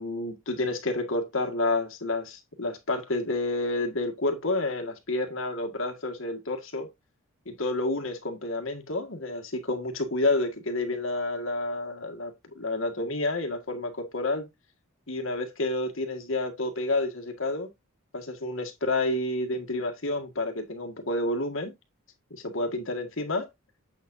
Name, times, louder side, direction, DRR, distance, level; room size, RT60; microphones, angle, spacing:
voice 1, 0.0-6.9 7.5-14.5 15.1-17.7 18.1-21.7 22.3-23.5, left 2 dB, 65° left, 1.9 m, -29 dB
7.8 x 7.2 x 2.7 m
head